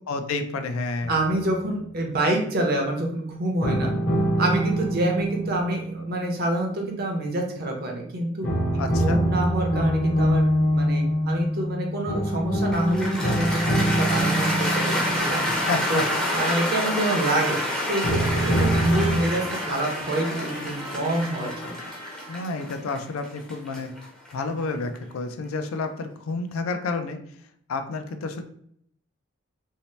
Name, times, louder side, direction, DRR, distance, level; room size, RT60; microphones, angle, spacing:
voice 1, 0.1-1.1 8.8-9.2 15.5-16.0 22.3-23.9 24.3-27.2 27.7-28.4, left 3 dB, 80° left, 7 dB, 0.4 m, -30 dB
sound 1, 1.0-2.2 3.6-7.6 8.4-17.2 18.0-19.2, right 1 dB, 50° left, 0.7 m, -25 dB
voice 2, 1.1-3.9 4.4-8.5 8.7-10.4 10.7-15.4 15.9-16.0 16.3-17.6 17.9-21.9, right 1 dB, 45° right, 1 dB, 0.6 m, -27 dB
Cheering / Applause, 12.7-24.9, left 1 dB, 5° left, 0.5 m, -28 dB
Trumpet, 13.7-22.6, right 1 dB, 90° right, 0.8 m, -39 dB
2.7 x 2.0 x 3.1 m, 0.68 s
head